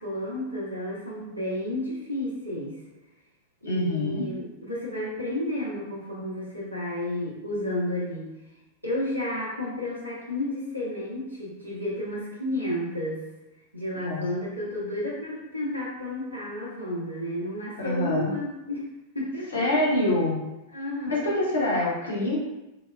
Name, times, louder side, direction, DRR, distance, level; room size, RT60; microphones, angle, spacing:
voice 1, 0.0-2.8 3.6-8.3 8.8-13.2 13.7-18.9 19.1-19.5 20.7-21.4, left 1 dB, 90° right, -5 dB, 0.8 m, -32 dB
voice 2, 3.6-4.3 13.9-14.2 17.8-18.3 19.5-20.4 21.1-22.4, left 1 dB, 70° left, -5 dB, 1.0 m, -25 dB
3.9 x 2.2 x 2.3 m, 0.98 s
figure-of-eight pair, 90°, 0 cm